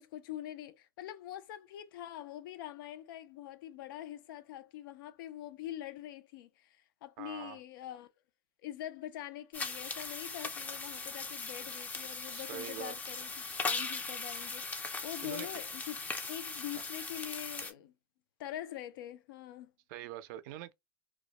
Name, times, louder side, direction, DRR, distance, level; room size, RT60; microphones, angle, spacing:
voice 1, 0.0-8.1 8.6-16.0 16.3-17.9 18.4-19.7, left 12 dB, 80° left, 0.4 m, -44 dB
voice 2, 7.2-7.6 12.3-12.9 15.2-15.5 16.8-16.9 19.9-20.7, right 13 dB, 60° right, 0.4 m, -44 dB
sound 1, 9.5-17.7, left 4 dB, 15° left, 0.4 m, -39 dB
2.2 x 2.1 x 2.8 m
supercardioid pair, 130°, 11 cm